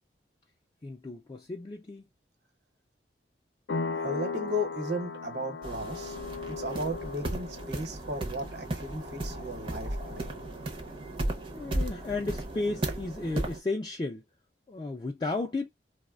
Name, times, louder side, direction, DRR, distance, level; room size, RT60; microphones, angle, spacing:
voice 1, 0.8-2.1 11.5-14.2 14.7-15.7, left 3 dB, 25° left, 0.3 m, -34 dB
sound 1, 3.7-12.0, left 4 dB, 90° left, 0.6 m, -39 dB
voice 2, 3.9-6.2 6.5-10.3, equal, 75° right, 0.9 m, -35 dB
sound 2, 5.6-13.6, right 1 dB, 30° right, 0.5 m, -35 dB
3.1 x 2.1 x 2.2 m
head